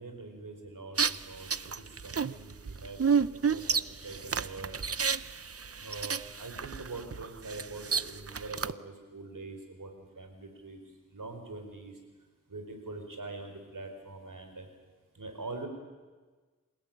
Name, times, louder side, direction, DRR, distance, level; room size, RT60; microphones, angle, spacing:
voice 1, 0.0-4.8 5.8-10.8 11.1-11.9 12.5-14.7 15.1-15.7, right 3 dB, 85° right, 5 dB, 4.9 m, -44 dB
sound 1, 1.0-8.7, right 6 dB, 45° right, 0.7 m, -31 dB
28.0 x 17.5 x 9.1 m, 1.3 s
wide cardioid pair, 40°, 32 cm